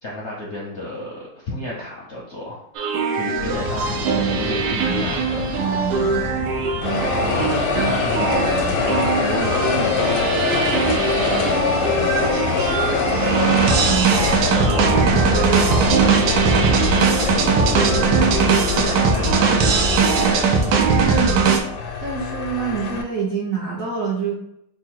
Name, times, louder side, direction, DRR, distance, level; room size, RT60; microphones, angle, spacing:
voice 1, 0.0-2.6 3.1-5.5 6.9-13.2 14.1-20.0, left 2 dB, 55° left, -4 dB, 0.8 m, -31 dB
sound 1, 2.8-21.6, right 5 dB, 85° right, 1.4 m, -20 dB
sound 2, 3.3-18.1, left 3 dB, 45° right, 1.3 m, -31 dB
sound 3, 3.6-6.4 6.8-23.0, left 5 dB, 85° left, 1.5 m, -25 dB
voice 2, 5.6-6.2 13.8-14.5 21.0-21.5 22.0-24.3, right 5 dB, 65° right, -3 dB, 0.9 m, -26 dB
3.7 x 2.2 x 4.5 m, 0.76 s
omnidirectional pair, 2.1 m